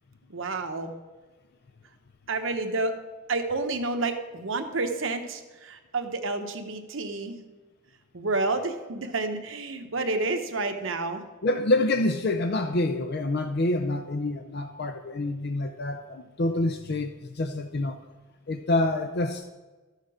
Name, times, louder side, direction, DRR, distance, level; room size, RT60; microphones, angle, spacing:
voice 1, 0.3-0.9 2.3-2.9 3.3-7.4 8.1-11.2, right 3 dB, 70° right, 1.0 m, -29 dB
voice 2, 11.4-18.0 18.5-19.5, left 2 dB, 50° left, 0.5 m, -27 dB
13.0 x 6.6 x 4.9 m
head